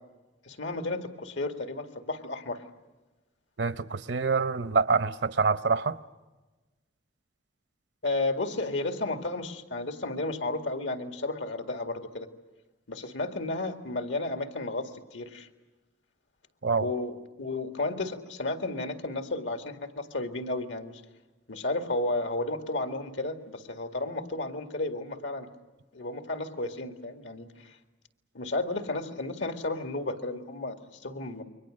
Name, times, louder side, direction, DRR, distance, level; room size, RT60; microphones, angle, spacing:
voice 1, 0.5-2.6 8.0-12.3 12.9-15.5 16.8-21.0 21.5-25.5 25.9-27.8 28.3-31.4, left 2 dB, 80° left, 2.2 m, -33 dB
voice 2, 3.6-6.0 16.6-16.9, right 4 dB, 65° right, 0.8 m, -26 dB
29.0 x 23.5 x 6.5 m
head